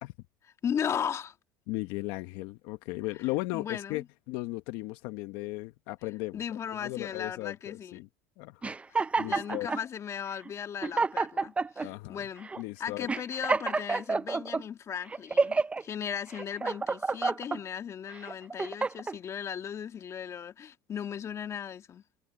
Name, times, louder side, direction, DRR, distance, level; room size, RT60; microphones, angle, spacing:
voice 1, 0.6-1.3 3.5-4.0 6.3-8.0 9.3-12.5 12.8-22.0, left 8 dB, 40° left, 2.2 m, -37 dB
voice 2, 1.7-6.4 6.7-8.1 8.4-9.7 11.8-12.3 12.6-13.1, left 20 dB, 75° left, 1.0 m, -36 dB
sound 1, 8.6-9.8 10.5-10.6 10.8-11.9 12.4-12.6 13.1-14.6 15.1-15.8 16.3-17.6 18.2-19.2, right 4 dB, 15° right, 0.5 m, -29 dB
supercardioid pair, 105°, 8 cm